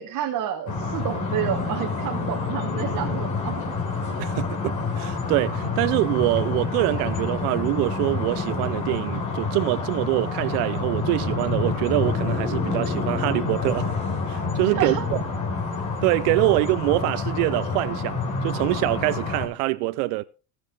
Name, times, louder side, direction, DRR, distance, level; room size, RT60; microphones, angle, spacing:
voice 1, 0.0-3.7 14.7-15.1, right 10 dB, 40° right, 1.4 m, -29 dB
sound 1, 0.7-19.5, left 4 dB, 40° left, 3.4 m, -28 dB
voice 2, 4.2-13.9 14.3-15.2 16.0-20.2, right 21 dB, 80° right, 0.6 m, -24 dB
17.5 x 6.6 x 3.8 m
cardioid pair, 130°, 46 cm